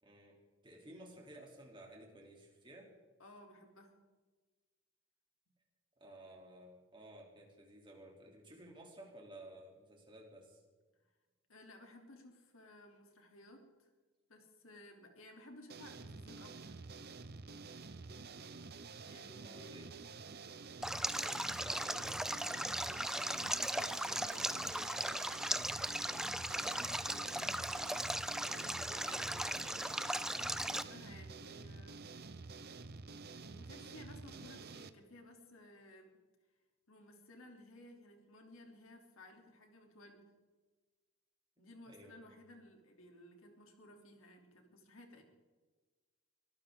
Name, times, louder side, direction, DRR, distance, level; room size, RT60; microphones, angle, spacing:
voice 1, 0.0-2.9 6.0-10.6 19.4-19.9 20.3-23.0 27.2-27.5 28.4-29.5 41.6-42.1, right 1 dB, 25° right, -1 dB, 3.2 m, -55 dB
voice 2, 3.2-4.0 11.5-13.9 14.3-16.8 19.0-19.8 23.2-25.2 26.6-27.4 30.2-32.1 33.4-36.2 36.9-40.3 41.6-45.2, left 1 dB, 75° left, 3 dB, 3.1 m, -57 dB
sound 1, 15.7-34.9, right 4 dB, 50° right, 0.8 m, -50 dB
Stream, 20.8-30.8, right 1 dB, ahead, 0.4 m, -37 dB
23.5 x 14.5 x 3.8 m, 1.3 s
head